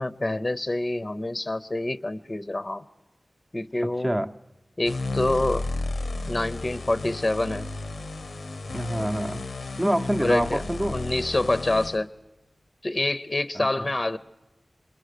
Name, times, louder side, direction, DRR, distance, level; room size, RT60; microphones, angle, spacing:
voice 1, 0.0-2.8 3.5-4.2 4.8-5.7 6.3-7.7 10.2-10.6 10.9-12.1 12.8-14.2, left 2 dB, 35° left, 13 dB, 0.7 m, -26 dB
voice 2, 3.8-4.3 8.7-9.4 9.8-11.0 13.5-13.9, right 1 dB, 20° right, 6 dB, 0.8 m, -27 dB
sound 1, 4.8-12.0, left 3 dB, 90° left, 0.8 m, -33 dB
27.0 x 21.5 x 6.7 m, 1.0 s
wide cardioid pair, 80°, 0 cm